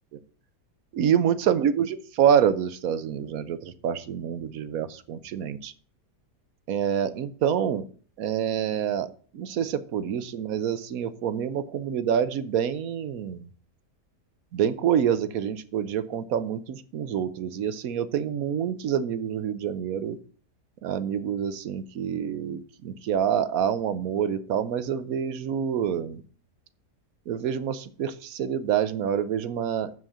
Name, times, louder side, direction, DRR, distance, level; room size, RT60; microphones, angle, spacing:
voice 1, 0.9-5.7 6.7-7.8 8.2-13.5 14.5-20.2 20.8-26.2 27.3-29.9, right 8 dB, 65° right, 14 dB, 1.1 m, -27 dB
7.1 x 6.3 x 7.2 m, 0.43 s
omnidirectional pair, 1.8 m